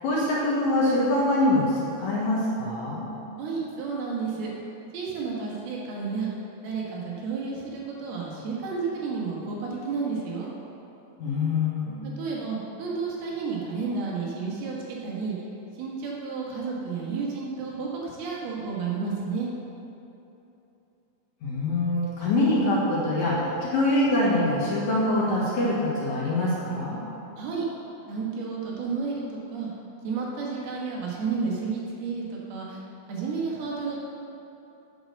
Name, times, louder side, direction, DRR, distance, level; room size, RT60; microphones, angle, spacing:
voice 1, 0.0-3.1 11.2-12.0 21.4-27.0, left 1 dB, 60° left, -6 dB, 2.3 m, -24 dB
voice 2, 3.4-4.5 4.9-6.3 6.6-10.5 12.0-15.4 15.8-19.5 27.4-27.7 28.1-29.7 30.0-32.8 33.1-34.0, right 5 dB, 75° right, -4 dB, 3.5 m, -31 dB
8.7 x 6.7 x 6.6 m, 2.9 s
omnidirectional pair, 4.5 m